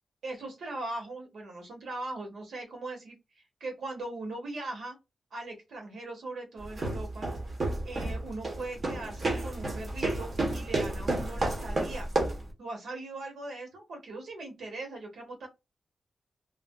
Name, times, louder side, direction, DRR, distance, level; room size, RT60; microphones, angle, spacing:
voice 1, 0.2-5.0 5.3-7.3 7.8-12.1 12.6-15.5, right 2 dB, 85° right, 2 dB, 1.3 m, -40 dB
sound 1, 6.6-12.5, right 2 dB, 40° right, 1.0 m, -31 dB
3.3 x 2.5 x 2.2 m, 0.23 s
wide cardioid pair, 135°, 0 cm